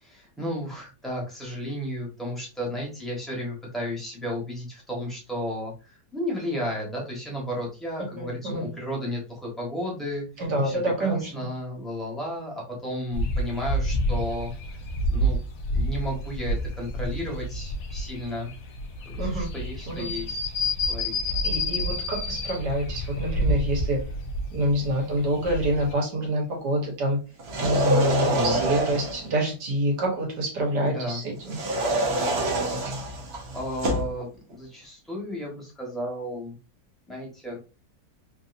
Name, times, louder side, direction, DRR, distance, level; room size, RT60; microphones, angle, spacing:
voice 1, 0.0-10.2 10.6-14.5 15.1-15.4 15.7-18.5 19.0-20.5 20.9-21.1 28.2-28.6 30.8-31.2 33.5-36.6 37.1-37.6, equal, ahead, -4 dB, 1.0 m, -33 dB
voice 2, 8.2-8.7 10.4-11.3 19.2-19.5 19.9-20.1 21.4-24.0 24.5-27.2 27.6-31.6, right 1 dB, 70° right, -1 dB, 1.8 m, -26 dB
sound 1, 13.1-25.9, equal, 60° left, 1.0 m, -29 dB
sound 2, 27.4-29.3 31.5-34.1, right 1 dB, 50° right, 0.7 m, -26 dB
3.6 x 2.7 x 2.5 m, 0.32 s
omnidirectional pair, 1.9 m